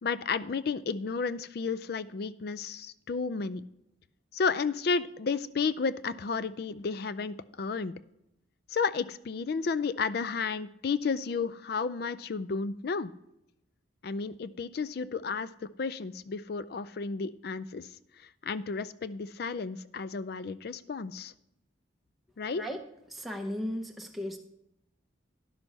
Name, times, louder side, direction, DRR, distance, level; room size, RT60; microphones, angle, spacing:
voice 1, 0.0-3.6 4.3-7.9 8.7-13.1 14.0-15.5 15.8-17.9 18.4-21.3 22.4-22.6, left 5 dB, 50° left, 16 dB, 0.4 m, -32 dB
voice 2, 23.1-24.4, equal, ahead, 1 dB, 0.7 m, -35 dB
11.0 x 6.1 x 5.4 m, 0.83 s
head